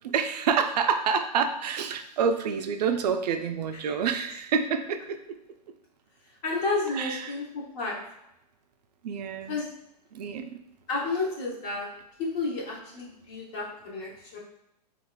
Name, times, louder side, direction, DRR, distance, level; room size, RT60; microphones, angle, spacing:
voice 1, 0.0-5.2 6.9-7.4 9.0-9.6 10.1-10.6, right 6 dB, 75° right, 7 dB, 0.4 m, -27 dB
voice 2, 6.4-8.0 9.5-9.7 10.9-11.9 12.2-14.4, left 3 dB, 40° left, -5 dB, 1.0 m, -31 dB
3.9 x 2.5 x 2.2 m, 0.83 s
hypercardioid pair, 125°, 21 cm